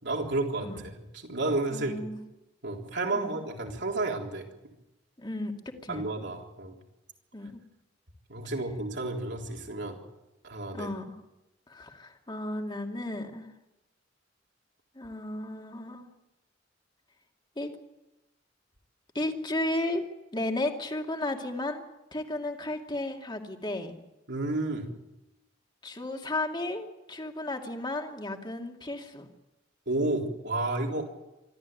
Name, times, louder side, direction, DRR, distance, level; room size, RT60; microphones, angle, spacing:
voice 1, 0.0-2.0 2.6-4.5 5.9-6.8 8.3-10.0 10.4-10.9 24.3-24.9 29.9-31.1, right 2 dB, 65° right, 1 dB, 3.7 m, -31 dB
voice 2, 1.7-2.2 3.1-3.4 5.2-5.5 5.8-6.0 7.3-7.6 10.7-11.1 11.7-13.5 14.9-16.1 17.6-17.7 19.1-20.0 20.3-21.8 22.1-24.0 25.8-29.3, left 1 dB, 25° left, 3 dB, 2.4 m, -34 dB
25.0 x 13.5 x 9.2 m, 0.98 s
head